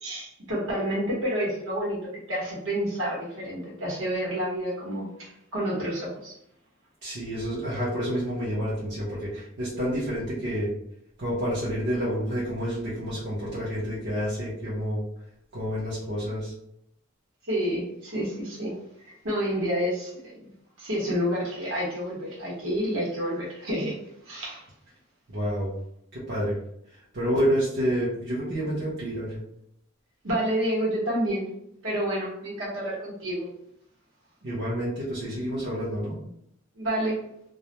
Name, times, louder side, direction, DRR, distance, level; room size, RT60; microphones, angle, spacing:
voice 1, 0.0-6.4 17.4-18.7 19.1-20.3 20.8-24.0 24.3-24.6 30.2-31.5 31.8-33.5 36.8-37.2, equal, 70° right, -5 dB, 1.0 m, -29 dB
voice 2, 7.0-10.7 11.2-15.0 15.5-16.5 25.3-25.7 26.1-26.5 26.9-29.4 34.4-36.2, equal, 55° right, -8 dB, 0.7 m, -29 dB
2.3 x 2.1 x 2.9 m, 0.74 s
head